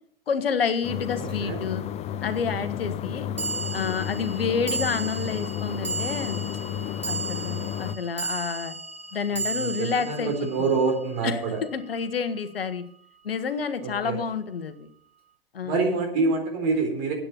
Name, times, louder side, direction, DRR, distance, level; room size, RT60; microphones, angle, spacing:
voice 1, 0.3-1.8 2.2-3.3 3.7-6.4 7.1-8.8 9.1-10.3 11.2-12.8 13.2-14.9 15.5-16.0, left 6 dB, 75° left, 10 dB, 1.3 m, -29 dB
sound 1, 0.8-8.0, left 10 dB, 20° left, 0.6 m, -32 dB
voice 2, 1.2-1.6 9.5-11.6 13.8-14.2 15.6-17.1, right 4 dB, 45° right, 4 dB, 4.1 m, -26 dB
sound 2, 1.3-1.4 3.4-11.8, right 4 dB, 90° right, 2.6 m, -35 dB
9.9 x 8.7 x 6.8 m, 0.65 s
figure-of-eight pair, 105°, 29 cm